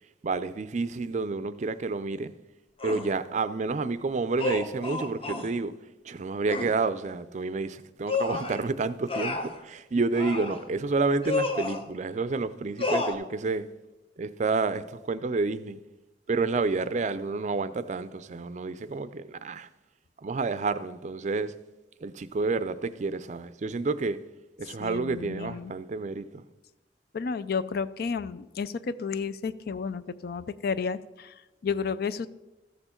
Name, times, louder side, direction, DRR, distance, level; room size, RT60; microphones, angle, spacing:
voice 1, 0.2-2.3 2.8-5.7 6.0-13.7 14.2-15.8 16.3-19.7 20.2-21.5 22.0-24.2 24.6-26.4, right 3 dB, 40° right, 0.4 m, -29 dB
sound 1, 2.8-3.1 4.4-5.5 6.5-6.7 8.1-8.6 9.1-9.6 10.1-10.6 11.2-11.8 12.8-13.1, left 3 dB, 30° left, 0.9 m, -30 dB
voice 2, 24.8-25.7 27.1-32.3, left 5 dB, 60° left, 0.4 m, -32 dB
13.5 x 6.8 x 4.4 m
head